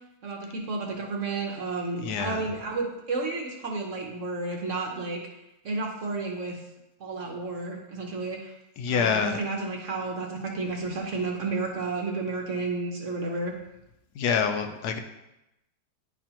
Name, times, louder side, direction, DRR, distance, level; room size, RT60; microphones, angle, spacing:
voice 1, 0.2-5.2 5.6-6.6 7.0-8.5 8.9-13.5, right 3 dB, 55° right, 0 dB, 1.0 m, -31 dB
voice 2, 2.0-2.5 8.8-9.4 14.2-15.0, left 6 dB, 75° left, 6 dB, 1.1 m, -26 dB
10.5 x 4.1 x 2.9 m, 0.91 s
omnidirectional pair, 1.8 m